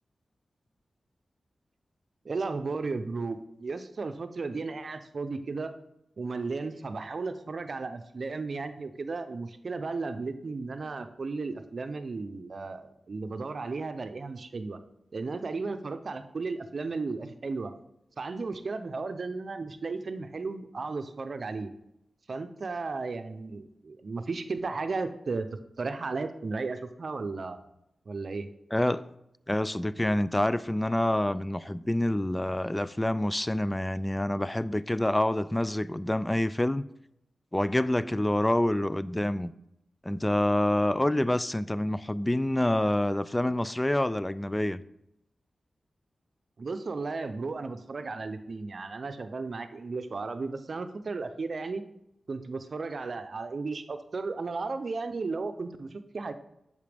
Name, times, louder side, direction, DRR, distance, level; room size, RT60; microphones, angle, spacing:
voice 1, 2.2-5.7 6.2-14.8 15.1-17.7 18.2-21.7 22.3-27.6 28.1-28.5 46.6-51.8 52.3-56.3, right 3 dB, 60° right, 0.6 m, -34 dB
voice 2, 28.7-29.0 29.5-36.8 37.5-39.5 40.0-44.8, left 1 dB, 15° left, 0.3 m, -27 dB
8.3 x 6.6 x 3.5 m
cardioid pair, 60°, 0 cm